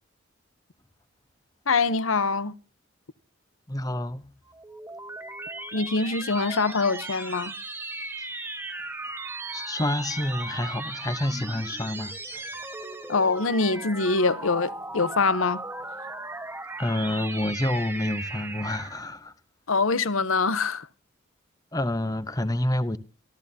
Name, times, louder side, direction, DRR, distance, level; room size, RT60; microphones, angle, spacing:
voice 1, 1.7-2.5 5.7-7.5 13.1-15.6 19.7-20.9, left 4 dB, 85° left, 0.9 m, -24 dB
voice 2, 3.7-4.3 9.5-12.5 16.8-19.3 21.7-23.0, left 1 dB, 15° left, 1.0 m, -28 dB
Beeping effect, 4.5-19.1, right 2 dB, 10° right, 1.4 m, -37 dB
26.5 x 14.0 x 2.8 m
head